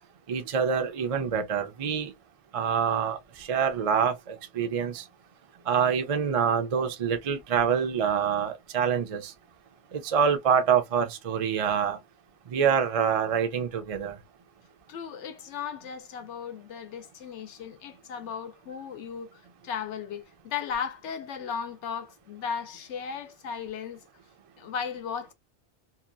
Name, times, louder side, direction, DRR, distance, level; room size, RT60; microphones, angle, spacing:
voice 1, 0.3-2.1 2.5-5.1 5.7-9.3 9.9-12.0 12.5-14.2, right 7 dB, 45° right, 0.4 m, -26 dB
voice 2, 14.9-24.0 24.6-25.3, left 7 dB, 80° left, 0.9 m, -36 dB
2.8 x 2.3 x 2.4 m
omnidirectional pair, 1.2 m